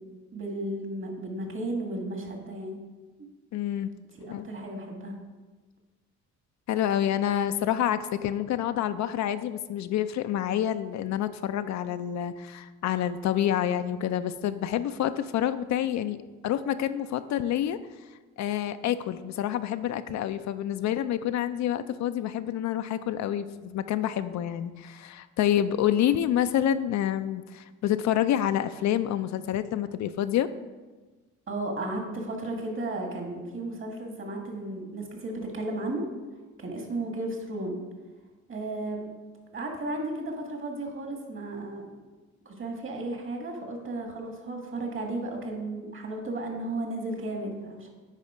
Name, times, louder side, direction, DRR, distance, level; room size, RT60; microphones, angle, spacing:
voice 1, 0.3-2.8 3.2-3.3 4.2-5.1 31.5-36.0 36.6-37.8 38.5-39.1 39.5-41.8 42.4-47.9, right 2 dB, 40° right, 2 dB, 1.8 m, -34 dB
voice 2, 3.5-3.9 4.3-4.5 6.7-16.2 16.4-17.8 18.4-30.5, left 11 dB, 65° left, 11 dB, 0.4 m, -28 dB
9.8 x 4.2 x 4.9 m, 1.3 s
cardioid pair, 90°, 30 cm